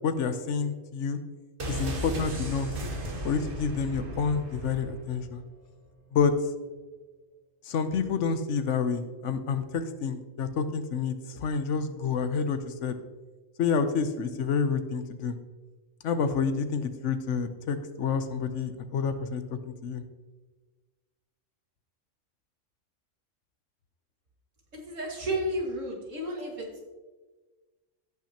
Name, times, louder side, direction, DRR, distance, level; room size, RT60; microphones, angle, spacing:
voice 1, 0.0-1.2 1.7-2.7 3.2-5.4 6.1-6.3 7.6-13.0 13.6-15.4 16.0-20.0, left 5 dB, 70° left, 10 dB, 1.0 m, -29 dB
sound 1, 1.6-5.4 5.6-5.7, right 1 dB, 45° right, 1.3 m, -35 dB
voice 2, 24.7-26.8, right 1 dB, 80° right, -1 dB, 2.2 m, -32 dB
16.0 x 6.0 x 2.9 m, 1.3 s
omnidirectional pair, 1.3 m